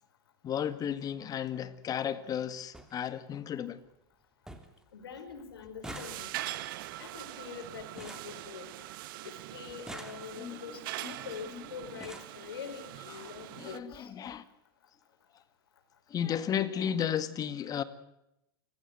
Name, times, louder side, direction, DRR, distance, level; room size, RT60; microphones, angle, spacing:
voice 1, 0.4-3.8 10.4-10.6 11.0-11.1 11.5-11.6 13.1-13.3 13.6-14.4 16.1-17.8, left 9 dB, 30° left, 2.0 m, -34 dB
sound 1, 0.7-0.8 2.0-2.1 2.4-2.5 2.7-2.9 3.4-3.9 4.1-4.2 4.5-4.8 5.1-9.1 9.7-10.6 11.4-11.5 11.8-12.4 13.4-13.5 13.8-14.0 14.3-14.4, right 1 dB, 5° right, 3.0 m, -48 dB
voice 2, 4.9-6.3 7.0-8.7 9.2-14.1, left 6 dB, 85° left, 5.0 m, -44 dB
sound 2, 5.8-13.8, right 16 dB, 65° right, 1.5 m, -43 dB
29.0 x 16.0 x 9.4 m
hypercardioid pair, 115°, 12 cm